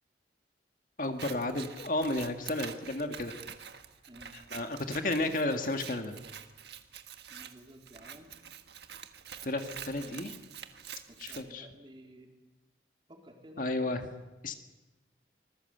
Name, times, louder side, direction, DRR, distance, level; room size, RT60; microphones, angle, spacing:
voice 1, 1.0-3.3 4.3-6.2 9.4-10.3 11.2-11.7 13.6-14.1 14.4-14.5, left 2 dB, 50° left, 6 dB, 1.8 m, -32 dB
Scissors, 1.0-11.4, right 8 dB, 65° right, 1.6 m, -47 dB
voice 2, 7.3-8.3 10.0-10.3 11.1-12.3 13.1-14.0, equal, 25° right, 2 dB, 3.9 m, -53 dB
25.5 x 20.5 x 8.0 m, 1.1 s
head